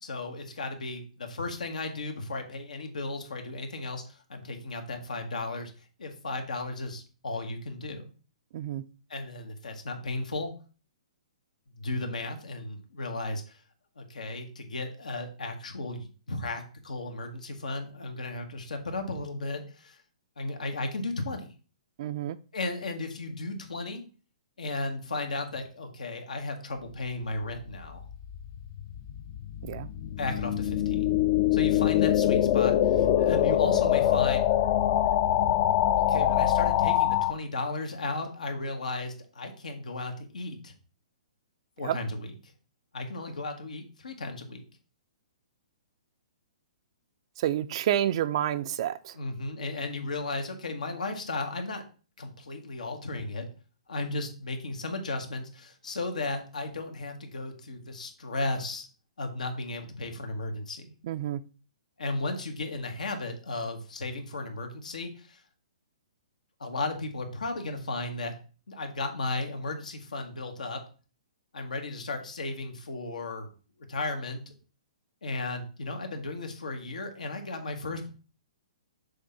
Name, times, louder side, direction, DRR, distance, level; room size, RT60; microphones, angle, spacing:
voice 1, 0.0-5.7 6.0-8.0 9.1-10.5 11.8-13.6 14.0-20.0 20.4-21.5 22.5-24.0 24.6-28.0 30.2-31.1 31.5-34.5 36.0-40.7 41.8-42.5 42.9-44.6 49.1-51.8 52.2-53.5 53.9-58.9 59.2-60.9 62.0-65.4 66.6-68.3 68.7-70.8 71.5-73.5 73.8-74.4 75.2-78.1, left 2 dB, 85° left, 1.5 m, -35 dB
voice 2, 8.5-8.8 22.0-22.4 29.7-29.9 41.8-42.0 47.4-49.1 61.0-61.4, right 11 dB, 45° right, 0.4 m, -29 dB
sound 1, 28.0-37.3, left 12 dB, 35° left, 0.5 m, -24 dB
6.5 x 2.7 x 5.5 m
hypercardioid pair, 145°, 4 cm